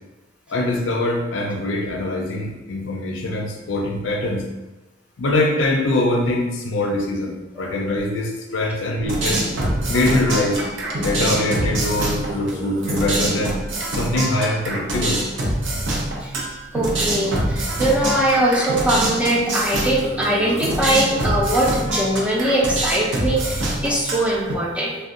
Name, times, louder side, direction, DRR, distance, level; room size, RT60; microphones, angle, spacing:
voice 1, 0.5-4.4 5.2-9.4 9.9-10.6 11.0-13.6 13.9-15.2, left 2 dB, 80° left, 1 dB, 0.5 m, -23 dB
sound 1, 9.1-24.5, right 1 dB, 75° right, 0.6 m, -25 dB
voice 2, 16.7-25.0, right 1 dB, 5° right, -4 dB, 0.4 m, -21 dB
2.6 x 2.2 x 3.6 m, 1.1 s
head